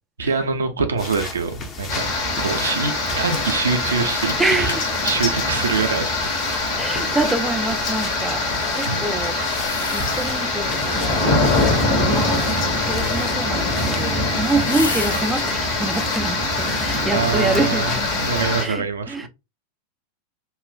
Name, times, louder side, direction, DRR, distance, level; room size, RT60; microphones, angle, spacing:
voice 1, 0.2-2.1 2.4-4.7 5.0-6.1 8.8-9.1 17.1-19.3, right 4 dB, 70° right, 0.7 m, -24 dB
sound 1, 1.0-18.6, left 1 dB, 30° left, 0.9 m, -35 dB
sound 2, 1.9-18.7, left 2 dB, 45° left, 1.6 m, -23 dB
sound 3, 3.3-3.6 3.9-4.0 4.4-4.9 9.4-10.6 10.9-11.5 13.4-15.4 15.8-16.2 16.7-17.3 17.7-17.8, left 3 dB, 70° left, 0.6 m, -33 dB
voice 2, 4.4-4.8 6.8-8.5 8.7-9.4 9.9-11.3 11.6-12.4 12.8-18.2 18.6-19.3, right 2 dB, 10° right, 0.5 m, -26 dB
5.5 x 2.4 x 2.3 m
figure-of-eight pair, 90°, 0 cm